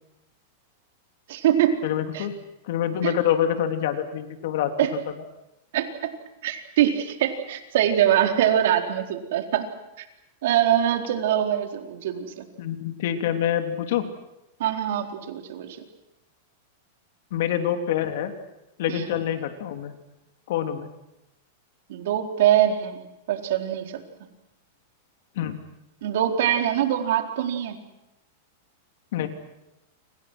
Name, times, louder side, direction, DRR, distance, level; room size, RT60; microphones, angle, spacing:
voice 1, 1.3-1.8 2.1-2.3 3.0-3.1 4.8-4.9 5.7-6.1 6.4-9.7 10.0-10.1 10.4-12.5 14.6-15.8 18.9-19.2 21.9-24.0 26.0-27.8, right 11 dB, 65° right, 4 dB, 4.3 m, -23 dB
voice 2, 1.8-2.3 2.6-4.7 12.6-14.1 17.3-18.3 18.8-19.9 20.5-20.9 25.3-25.5 29.1-29.3, left 10 dB, 65° left, 6 dB, 3.3 m, -26 dB
30.0 x 26.0 x 6.3 m, 0.91 s
supercardioid pair, 150°, 0 cm